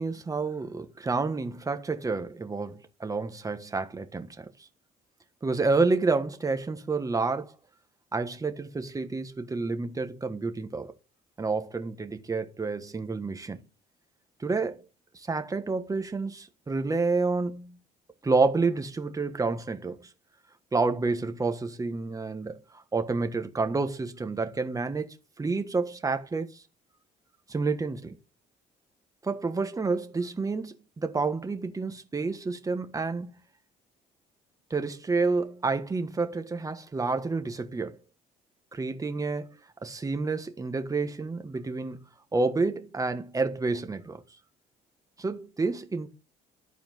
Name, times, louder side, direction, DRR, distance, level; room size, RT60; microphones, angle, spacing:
voice 1, 0.0-4.5 5.4-7.5 8.1-10.9 11.4-13.6 14.4-14.8 15.1-17.8 18.2-20.1 20.7-25.1 25.4-26.6 27.5-28.2 29.2-33.4 34.7-38.0 38.7-42.0 42.3-44.2 45.2-46.1, right 3 dB, 20° right, 1.4 m, -29 dB
12.0 x 4.3 x 5.6 m
cardioid pair, 110°, 17 cm